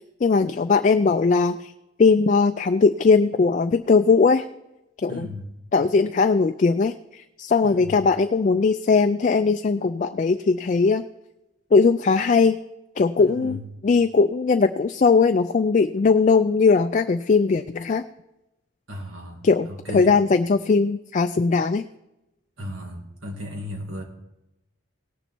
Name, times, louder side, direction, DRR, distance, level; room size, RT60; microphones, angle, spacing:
voice 1, 0.2-1.7 2.0-4.5 5.0-5.3 5.7-11.1 11.7-12.6 13.0-18.0 19.4-21.8, left 4 dB, 40° left, 8 dB, 0.3 m, -19 dB
voice 2, 5.1-5.5 7.6-8.0 13.2-13.6 18.9-20.1 22.6-24.0, left 1 dB, 80° right, 0 dB, 2.6 m, -35 dB
18.0 x 7.0 x 4.5 m, 0.92 s
head